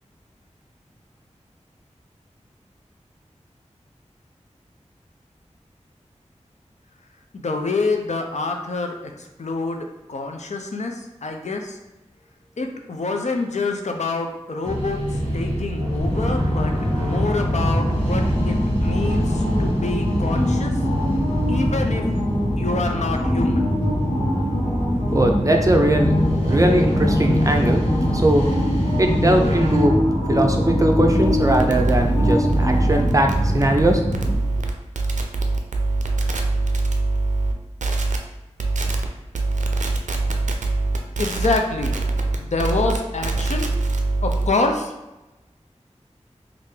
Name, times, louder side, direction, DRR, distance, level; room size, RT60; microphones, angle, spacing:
voice 1, 7.3-8.9 9.4-10.9 11.2-11.7 12.6-15.0 15.3-16.7 17.0-18.5 18.8-20.7 21.5-22.1 22.6-23.7 41.2-41.9 42.4-43.7 44.2-44.9, left 3 dB, 70° left, 4 dB, 0.5 m, -26 dB
sound 1, 14.6-29.8, left 1 dB, 50° left, 1.3 m, -26 dB
sound 2, 16.0-34.3, equal, 85° left, 1.1 m, -22 dB
voice 2, 25.1-26.2 26.5-28.5 29.0-30.0 30.3-34.0, right 1 dB, 25° right, 3 dB, 0.5 m, -20 dB
sound 3, 31.2-37.5 37.8-38.2 38.6-39.1 39.3-44.5, right 2 dB, 85° right, 0.4 m, -23 dB
3.3 x 2.5 x 3.2 m, 1.0 s
wide cardioid pair, 50°, 12 cm